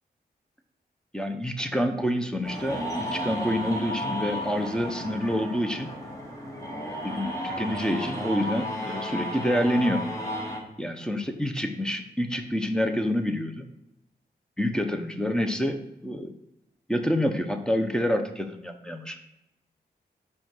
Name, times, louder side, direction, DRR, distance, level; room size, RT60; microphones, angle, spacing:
voice 1, 1.1-5.9 6.9-10.1 10.8-13.6 14.6-16.3 16.9-19.2, equal, 5° left, 6 dB, 0.8 m, -27 dB
sound 1, 2.4-10.6, equal, 20° left, 1.8 m, -33 dB
5.1 x 4.8 x 6.1 m, 0.89 s
wide cardioid pair, 95°, 17 cm